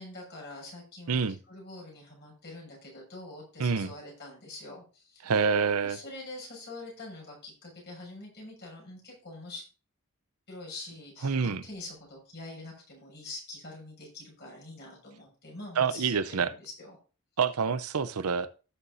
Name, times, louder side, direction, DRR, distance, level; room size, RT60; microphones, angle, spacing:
voice 1, 0.0-1.2 1.5-5.3 5.8-9.6 10.5-17.0, left 2 dB, 50° left, -2 dB, 6.8 m, -45 dB
voice 2, 3.6-3.9 5.2-6.0 11.2-11.6 15.8-16.5 17.4-18.5, right 5 dB, 80° right, 14 dB, 0.6 m, -27 dB
17.5 x 7.0 x 2.7 m, 0.35 s
head